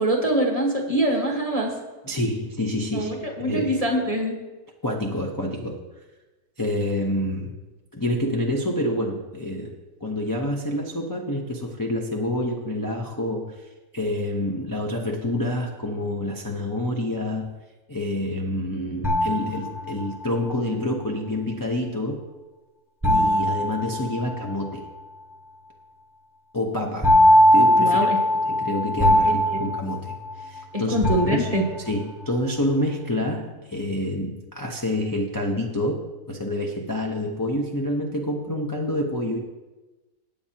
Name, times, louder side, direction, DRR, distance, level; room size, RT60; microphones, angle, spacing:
voice 1, 0.0-1.7 2.9-4.4 27.8-28.2 29.3-29.6 30.7-31.6, right 1 dB, 25° right, 0 dB, 1.4 m, -24 dB
voice 2, 2.0-3.1 3.4-3.8 4.8-5.8 6.6-7.5 7.9-9.7 10.0-17.5 17.9-22.2 23.0-24.9 26.5-27.2 27.5-28.0 28.4-31.0 31.3-39.4, left 1 dB, 15° left, -1 dB, 0.7 m, -27 dB
sound 1, 19.0-20.2 23.0-24.7 27.0-30.6 31.0-32.0, equal, ahead, 1.0 m, -20 dB
15.5 x 8.8 x 2.9 m, 1.2 s
omnidirectional pair, 1.7 m